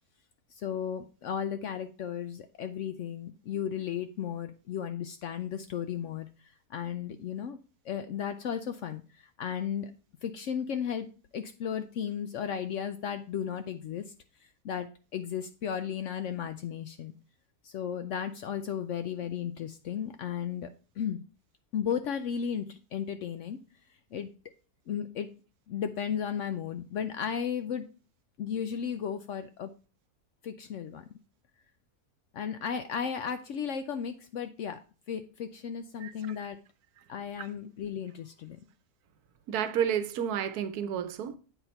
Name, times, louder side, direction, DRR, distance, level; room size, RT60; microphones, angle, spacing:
voice 1, 0.6-6.3 6.7-7.6 7.9-9.0 9.4-9.9 10.2-11.1 11.3-14.0 14.6-17.2 17.6-20.7 21.0-21.2 21.7-23.6 24.1-24.3 24.9-25.3 25.7-27.9 28.4-29.7 30.4-31.0 32.3-34.8 35.1-36.6 37.1-38.6, left 8 dB, 70° left, 0.7 m, -34 dB
voice 2, 36.0-36.4 39.5-41.4, right 9 dB, 75° right, 1.1 m, -31 dB
8.0 x 4.1 x 4.3 m
omnidirectional pair, 1.6 m